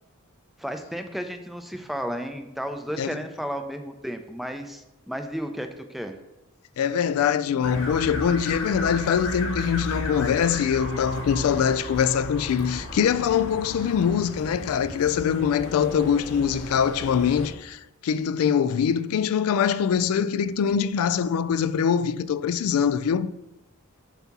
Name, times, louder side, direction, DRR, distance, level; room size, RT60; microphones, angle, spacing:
voice 1, 0.6-6.1, equal, ahead, 0.4 m, -33 dB
voice 2, 6.8-23.3, left 7 dB, 90° left, 0.3 m, -23 dB
sound 1, 7.6-17.5, left 1 dB, 65° left, 1.2 m, -35 dB
7.0 x 2.8 x 5.9 m
head